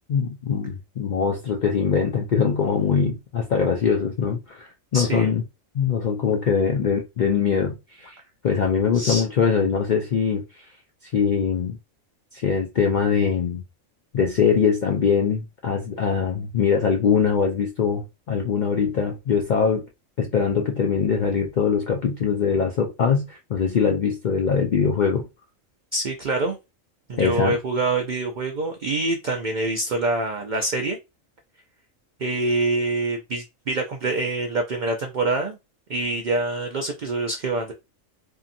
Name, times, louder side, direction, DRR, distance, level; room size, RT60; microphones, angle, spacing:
voice 1, 0.1-5.4 5.7-8.2 8.4-10.4 11.0-11.8 12.3-13.6 14.1-19.8 20.2-25.3 27.2-27.6, left 6 dB, 75° left, 0.4 m, -22 dB
voice 2, 4.9-5.3 8.9-9.2 25.9-26.6 27.1-31.0 32.2-35.6 35.9-37.7, right 2 dB, 85° right, 0.4 m, -25 dB
2.8 x 2.6 x 2.5 m
omnidirectional pair, 1.4 m